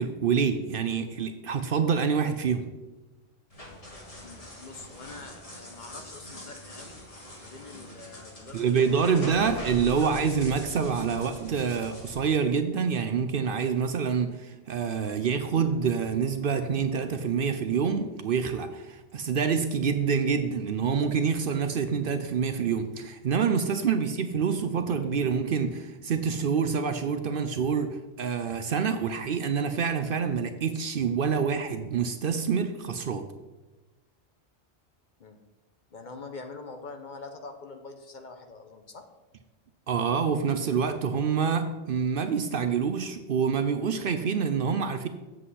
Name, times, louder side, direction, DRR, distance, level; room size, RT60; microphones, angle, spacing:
voice 1, 0.0-2.7 8.5-33.3 39.9-45.1, right 6 dB, 60° right, 9 dB, 0.7 m, -27 dB
sound 1, 3.5-12.1, equal, 30° left, 1.7 m, -43 dB
voice 2, 4.2-7.0 7.4-8.8 9.1-9.5 9.8-10.1 23.9-24.1 35.2-35.4 35.9-39.0, left 3 dB, 45° left, 5 dB, 0.9 m, -45 dB
7.9 x 7.6 x 4.1 m, 1.1 s
omnidirectional pair, 1.2 m